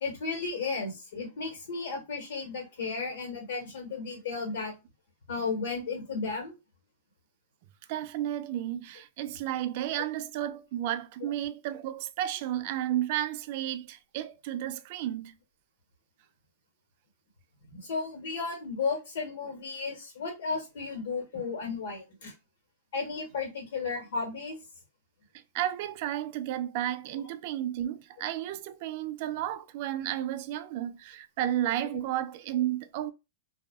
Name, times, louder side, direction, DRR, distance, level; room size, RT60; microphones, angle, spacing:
voice 1, 0.0-4.7 5.3-6.5 17.7-22.3 22.9-24.6, left 4 dB, 75° left, 1.6 m, -34 dB
voice 2, 7.9-15.3 25.5-33.1, right 12 dB, 50° right, 0.3 m, -32 dB
2.7 x 2.3 x 2.3 m
supercardioid pair, 150°, 0 cm